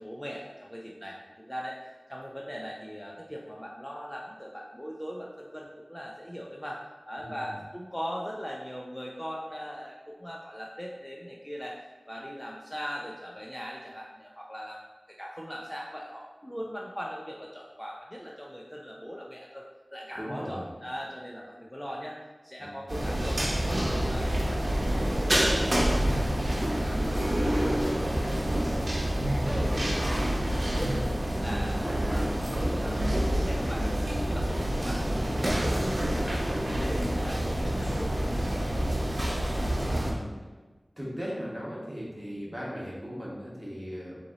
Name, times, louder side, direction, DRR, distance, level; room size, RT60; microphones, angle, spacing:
voice 1, 0.0-6.8 7.1-14.8 15.1-19.6 19.9-29.1 29.5-30.2 30.6-31.0 31.4-38.9, equal, 10° left, -2 dB, 0.5 m, -40 dB
voice 2, 7.2-7.5 20.1-20.7 22.6-22.8 26.6-26.9 29.5-29.7 39.8-40.4 41.0-44.2, equal, 20° right, -6 dB, 1.3 m, -38 dB
sound 1, 22.9-40.1, right 1 dB, 55° right, 0.9 m, -27 dB
4.3 x 2.7 x 3.8 m, 1.3 s
wide cardioid pair, 45°, 0 cm